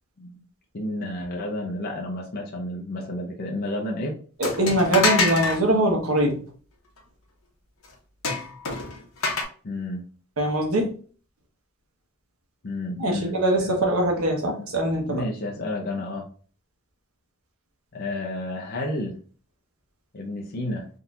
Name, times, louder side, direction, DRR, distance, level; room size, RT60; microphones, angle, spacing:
voice 1, 0.7-4.2 8.8-8.9 9.6-10.0 12.6-13.8 15.1-16.3 17.9-19.2 20.1-20.8, left 1 dB, 45° left, 0 dB, 0.6 m, -31 dB
sound 1, 4.4-5.6 8.2-9.4, left 3 dB, 75° left, 0.9 m, -25 dB
voice 2, 4.4-6.4 10.4-10.9 13.0-15.2, right 1 dB, 80° right, 1 dB, 1.1 m, -22 dB
3.7 x 2.8 x 2.4 m, 0.41 s
head